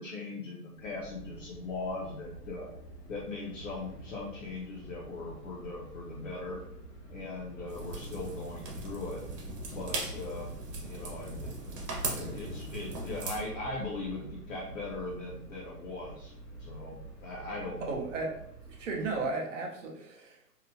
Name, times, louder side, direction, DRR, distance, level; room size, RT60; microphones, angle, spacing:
voice 1, 0.0-2.7 3.1-6.6 7.1-9.2 9.7-10.5 10.8-11.5 12.1-16.3 16.6-18.0, left 2 dB, 55° left, -4 dB, 0.6 m, -39 dB
sound 1, 0.7-19.4, right 2 dB, 90° left, 1.1 m, -48 dB
sound 2, 7.7-13.4, right 2 dB, 85° right, 1.0 m, -39 dB
voice 2, 17.8-18.3 18.7-20.5, right 3 dB, 50° right, 1 dB, 0.6 m, -35 dB
2.8 x 2.1 x 2.6 m, 0.73 s
hypercardioid pair, 170°, 48 cm